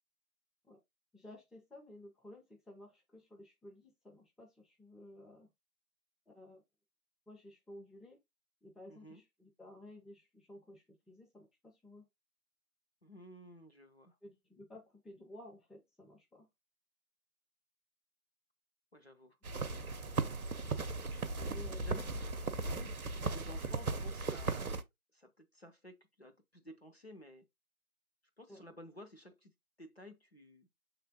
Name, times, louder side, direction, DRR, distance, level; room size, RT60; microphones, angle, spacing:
voice 1, 1.1-5.5 6.3-6.6 7.3-8.2 8.6-12.1 14.2-16.5 21.5-22.1 28.5-28.6, left 1 dB, ahead, 0.5 m, -54 dB
voice 2, 8.9-9.2 13.0-14.2 18.9-19.4 21.0-22.1 22.6-24.8 25.1-27.4 28.4-29.5 29.8-30.7, equal, 45° left, 0.7 m, -54 dB
sound 1, 19.4-24.8, right 3 dB, 75° right, 0.7 m, -37 dB
6.5 x 3.3 x 2.2 m
figure-of-eight pair, 170°, 44 cm